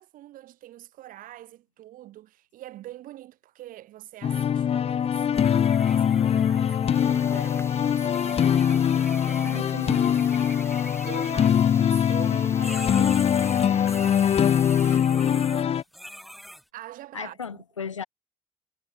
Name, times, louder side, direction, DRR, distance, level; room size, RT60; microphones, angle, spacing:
voice 1, 0.0-9.6 10.3-13.9 14.7-15.8 16.7-17.6, right 14 dB, 60° right, 2.1 m, -44 dB
sound 1, 4.2-15.8, left 9 dB, 40° left, 0.6 m, -22 dB
sound 2, 5.3-12.3 12.6-16.6, equal, ahead, 4.4 m, -43 dB
sound 3, 6.9-15.0, left 2 dB, 15° left, 5.4 m, -45 dB
voice 2, 9.4-10.4 15.3-15.5 17.1-18.1, left 6 dB, 85° left, 0.8 m, -36 dB
figure-of-eight pair, 40°, 16 cm